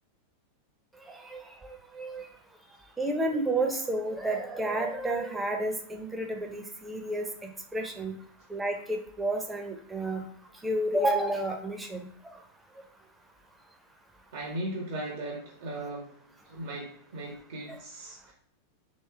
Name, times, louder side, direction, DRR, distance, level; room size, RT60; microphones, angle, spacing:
voice 1, 1.2-2.3 3.0-8.2 8.5-10.2 10.6-12.1, right 1 dB, 10° right, 4 dB, 0.6 m, -31 dB
voice 2, 14.3-16.1 16.5-18.3, right 1 dB, 55° right, -1 dB, 0.9 m, -37 dB
3.2 x 3.0 x 3.3 m, 0.66 s
figure-of-eight pair, 90°, 0 cm